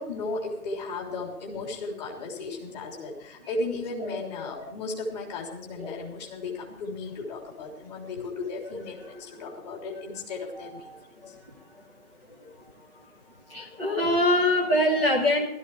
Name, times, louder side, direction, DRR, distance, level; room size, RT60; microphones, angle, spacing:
voice 1, 0.0-11.4, left 3 dB, 25° left, 0 dB, 3.5 m, -35 dB
voice 2, 4.0-4.6 5.8-6.0 8.7-9.5 10.6-11.3 13.0-13.1 13.5-15.5, left 1 dB, 5° left, -7 dB, 0.7 m, -26 dB
15.5 x 13.5 x 4.7 m, 0.85 s
figure-of-eight pair, 140°, 45 cm